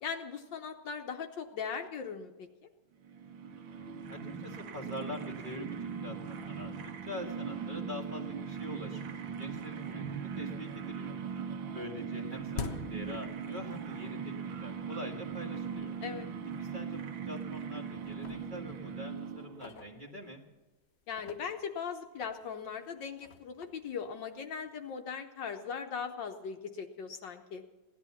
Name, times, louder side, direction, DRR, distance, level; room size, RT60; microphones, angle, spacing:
voice 1, 0.0-2.7 16.0-16.3 21.1-27.6, left 6 dB, 65° left, 6 dB, 1.4 m, -39 dB
sound 1, 3.0-19.7, right 6 dB, 70° right, 1.6 m, -40 dB
voice 2, 3.7-6.7 7.0-11.1 11.7-15.9 16.6-20.4, left 1 dB, 25° right, 0 dB, 1.5 m, -44 dB
sound 2, 9.8-9.9 10.2-10.8 11.1-14.0 14.3-14.4 15.2-15.3 15.8-15.9 16.2-16.4 17.1-17.6 18.0-20.6 21.0-24.9, left 6 dB, 80° left, 0.5 m, -48 dB
16.5 x 11.0 x 7.1 m, 1.2 s
omnidirectional pair, 2.4 m